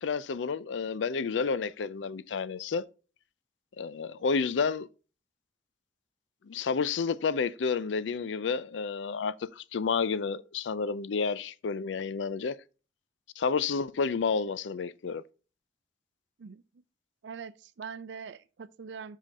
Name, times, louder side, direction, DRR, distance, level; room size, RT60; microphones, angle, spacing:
voice 1, 0.0-2.9 3.8-4.9 6.5-12.6 13.4-15.2, left 5 dB, 75° left, 0.4 m, -30 dB
voice 2, 16.4-16.8 17.2-19.2, right 6 dB, 70° right, 0.4 m, -43 dB
5.7 x 5.2 x 3.5 m
head